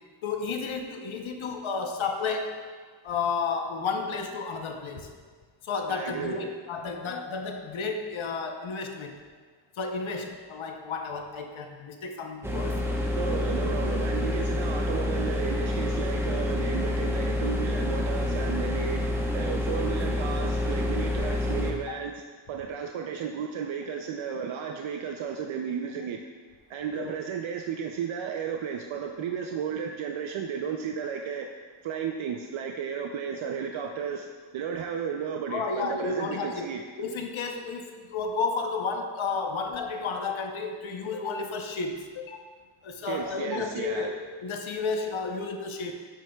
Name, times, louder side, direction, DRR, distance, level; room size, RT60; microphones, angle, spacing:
voice 1, 0.2-2.6 3.0-5.1 5.6-9.1 9.8-12.8 26.9-27.1 35.5-42.5 42.8-45.9, left 4 dB, 85° left, 4 dB, 0.9 m, -32 dB
voice 2, 5.9-6.5 13.1-22.2 22.5-26.2 26.7-31.5 31.8-34.3 34.5-36.8 43.0-44.1, right 7 dB, 85° right, 3 dB, 0.6 m, -33 dB
sound 1, 12.4-21.7, left 1 dB, 5° right, 0.9 m, -28 dB
10.0 x 7.5 x 2.3 m, 1.5 s
wide cardioid pair, 100°, 46 cm